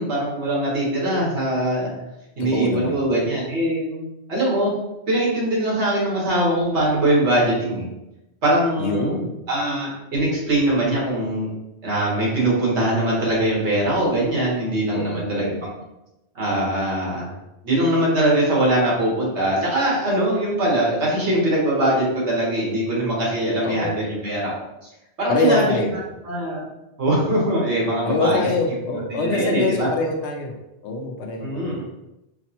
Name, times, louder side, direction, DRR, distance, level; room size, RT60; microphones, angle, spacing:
voice 1, 0.0-1.9 2.4-4.7 5.1-7.8 8.4-9.2 9.5-11.5 11.8-15.5 16.3-17.3 17.6-24.6 25.2-25.8 26.2-26.6 27.0-28.4 29.1-29.9 31.4-31.8, right 1 dB, 85° right, -5 dB, 1.6 m, -22 dB
voice 2, 2.4-3.0 8.8-9.3 14.9-15.6 23.6-24.0 25.3-26.0 28.0-30.6 30.8-31.8, left 2 dB, 80° left, 3 dB, 0.9 m, -24 dB
5.0 x 2.1 x 2.8 m, 0.92 s
omnidirectional pair, 1.1 m